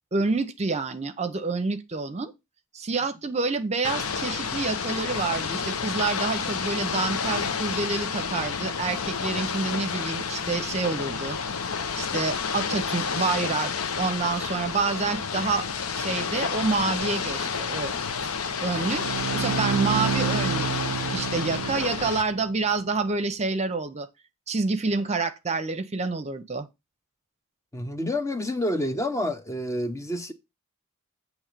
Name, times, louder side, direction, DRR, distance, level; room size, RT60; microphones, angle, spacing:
voice 1, 0.1-2.3 2.7-11.4 11.9-15.7 15.9-17.9 18.6-19.0 19.3-20.9 21.1-24.1 24.5-26.7, right 3 dB, 30° right, 0.7 m, -28 dB
Ocean / Boat Water vehicle, 3.8-22.2, left 6 dB, 70° left, 0.8 m, -30 dB
Bowed string instrument, 18.7-22.3, right 8 dB, 80° right, 0.3 m, -29 dB
voice 2, 27.7-30.3, left 1 dB, 15° left, 0.8 m, -28 dB
8.8 x 3.1 x 6.6 m
head